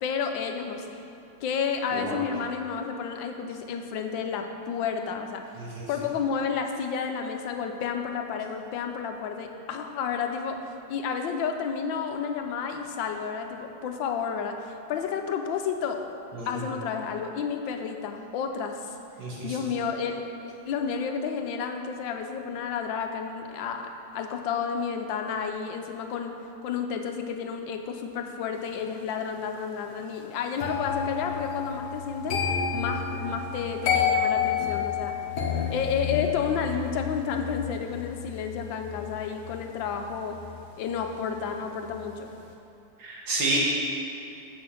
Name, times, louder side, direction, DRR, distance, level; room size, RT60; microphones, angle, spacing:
voice 1, 0.0-1.0 1.4-5.4 5.9-10.6 10.9-16.0 16.5-18.9 19.4-26.3 26.6-32.4 32.7-35.2 35.7-40.4 40.8-42.3, left 6 dB, 80° left, 5 dB, 1.4 m, -31 dB
voice 2, 5.6-5.9 16.3-16.6 19.2-19.6 43.0-43.6, right 3 dB, 80° right, -5 dB, 2.4 m, -30 dB
sound 1, 30.6-41.6 41.8-42.2, left 7 dB, 60° left, 1.5 m, -31 dB
7.6 x 6.1 x 6.3 m, 2.7 s
omnidirectional pair, 2.1 m